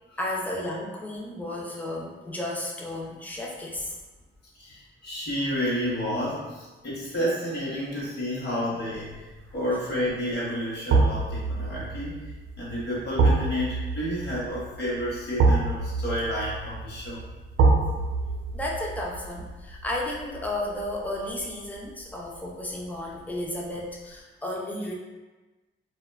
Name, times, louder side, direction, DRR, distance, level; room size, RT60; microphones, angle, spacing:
voice 1, 0.2-4.0 9.5-9.6 18.5-24.9, left 1 dB, 10° left, -2 dB, 0.3 m, -33 dB
voice 2, 4.5-17.3, equal, 50° left, -6 dB, 0.9 m, -30 dB
sound 1, 9.1-9.5 10.9-21.9 22.2-22.4, right 3 dB, 85° right, 0.5 m, -26 dB
2.5 x 2.1 x 2.3 m, 1.2 s
wide cardioid pair, 155°, 21 cm